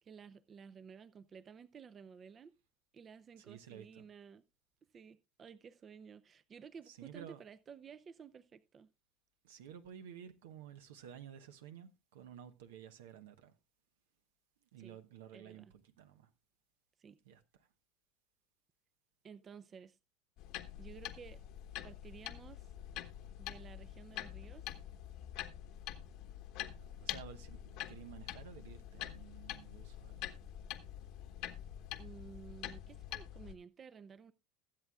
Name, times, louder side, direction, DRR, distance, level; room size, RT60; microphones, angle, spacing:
voice 1, 0.0-2.5 2.9-4.4 4.9-8.9 14.8-15.0 15.3-15.7 17.0-17.2 19.2-20.0 20.8-21.4 21.8-22.7 23.4-24.7 32.0-34.3, right 6 dB, 35° right, 0.6 m, -54 dB
voice 2, 3.4-4.0 6.9-7.4 9.4-13.5 14.7-16.3 17.2-17.7 26.6-30.4, right 9 dB, 85° right, 1.0 m, -53 dB
sound 1, 20.4-33.5, left 12 dB, 70° left, 1.2 m, -46 dB
21.0 x 7.8 x 2.4 m
supercardioid pair, 95°, 0 cm